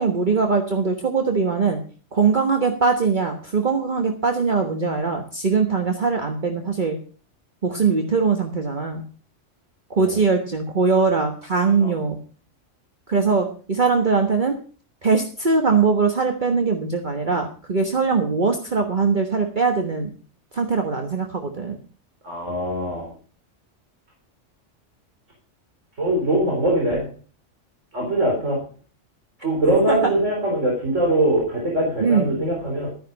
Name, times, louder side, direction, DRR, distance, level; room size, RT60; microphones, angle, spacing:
voice 1, 0.0-1.8 2.1-7.0 7.6-9.0 9.9-12.2 13.1-14.6 15.0-20.1 20.5-21.8 29.9-30.0 32.0-32.3, right 4 dB, 40° right, 4 dB, 1.4 m, -21 dB
voice 2, 22.2-23.1 26.0-27.1 27.9-28.6 29.4-32.9, right 1 dB, 80° right, -1 dB, 4.2 m, -22 dB
12.5 x 10.0 x 5.3 m, 0.39 s
omnidirectional pair, 1.3 m